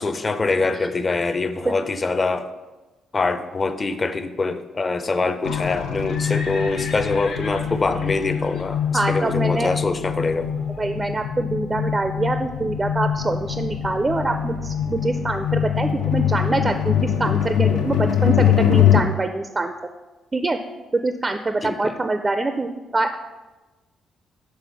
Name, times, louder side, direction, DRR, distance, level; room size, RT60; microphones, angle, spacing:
voice 1, 0.0-2.5 3.1-10.5 21.6-21.9, left 3 dB, 30° left, 10 dB, 0.5 m, -24 dB
Livestock farm animals working animals, 5.3-11.1, left 3 dB, 70° left, 0.8 m, -40 dB
sound 1, 5.4-19.0, left 9 dB, 90° left, 0.5 m, -23 dB
voice 2, 8.9-9.7 10.8-19.7 20.3-20.6 20.9-23.2, right 2 dB, 25° right, 7 dB, 0.3 m, -24 dB
6.7 x 3.5 x 5.0 m, 1.2 s
cardioid pair, 90°, 0 cm